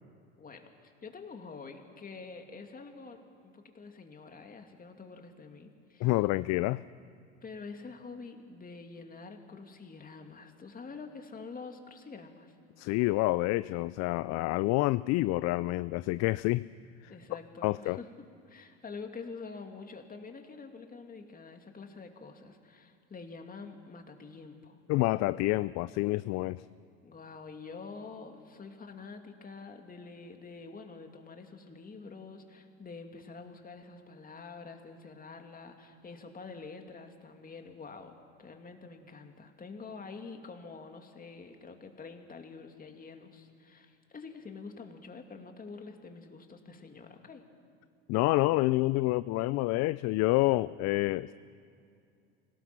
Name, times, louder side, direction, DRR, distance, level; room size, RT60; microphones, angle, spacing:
voice 1, 0.4-6.2 7.4-12.5 17.1-24.8 27.0-47.5, left 4 dB, 25° left, 5 dB, 2.4 m, -47 dB
voice 2, 6.0-6.8 12.8-16.6 17.0-17.1 17.6-18.0 24.9-26.6 48.1-51.3, left 20 dB, 50° left, 17 dB, 0.4 m, -28 dB
25.5 x 18.0 x 5.9 m, 2.5 s
hypercardioid pair, 85°, 35 cm